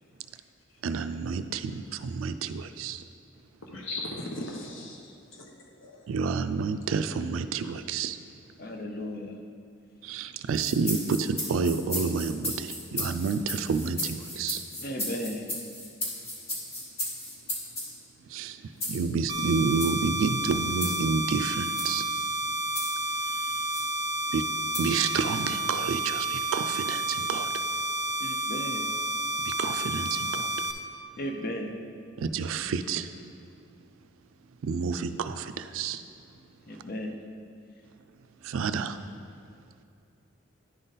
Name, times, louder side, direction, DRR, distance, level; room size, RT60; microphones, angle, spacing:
voice 1, 0.8-3.0 6.1-8.2 10.0-14.6 18.3-22.0 23.3-23.5 24.3-24.4 24.8-27.5 29.4-30.5 32.2-33.1 34.6-36.0 36.7-36.8 38.4-39.0, right 5 dB, 85° right, 10 dB, 0.3 m, -29 dB
voice 2, 3.6-6.1, left 1 dB, 75° left, 0 dB, 0.9 m, -39 dB
voice 3, 8.6-9.4 14.8-15.5 28.2-28.9 31.2-31.8 36.6-37.2, equal, 45° left, 3 dB, 0.6 m, -35 dB
sound 1, 10.5-17.9 18.8-19.1 19.7-20.0 20.8-21.1 21.6-22.0 22.8-23.1 23.7-23.9 24.7-25.0, left 1 dB, 30° left, 1.2 m, -35 dB
sound 2, 19.3-30.7, right 1 dB, 15° right, 0.4 m, -30 dB
10.5 x 3.8 x 4.0 m, 2.5 s
head